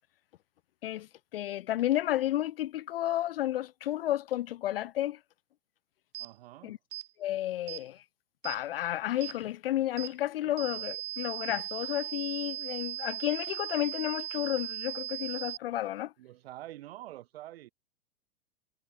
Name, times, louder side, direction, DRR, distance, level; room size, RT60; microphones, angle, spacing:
voice 1, 0.8-5.2 6.6-6.8 7.2-8.0 8.4-16.1, left 13 dB, 50° left, 0.6 m, -32 dB
sound 1, 6.1-6.3 6.9-7.1 7.7-7.8 8.4-8.6 9.2-9.4 10.0-10.1 10.6-15.6, right 14 dB, 30° right, 3.4 m, -38 dB
voice 2, 6.2-6.8 10.4-10.5 16.2-17.7, right 15 dB, 50° right, 7.3 m, -46 dB
figure-of-eight pair, 100°, 37 cm